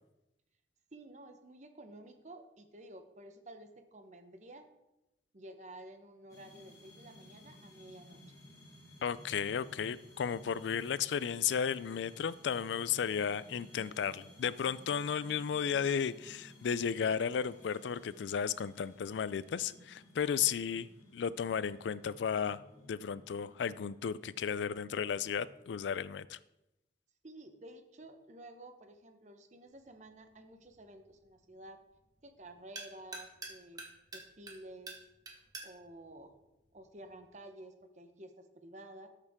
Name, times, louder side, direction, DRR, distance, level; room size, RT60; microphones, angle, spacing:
voice 1, 0.9-4.7 5.3-8.2 27.2-31.8 32.2-33.9 34.1-35.0 35.6-36.4 36.7-39.1, right 1 dB, 40° right, 7 dB, 0.9 m, -52 dB
sound 1, 6.3-25.6, left 1 dB, 20° left, 2.4 m, -57 dB
voice 2, 9.0-22.6 22.9-26.4, left 7 dB, 85° left, 17 dB, 0.4 m, -34 dB
sound 2, 29.7-37.3, right 2 dB, 20° right, 1.3 m, -51 dB
13.0 x 6.7 x 3.6 m, 0.93 s
head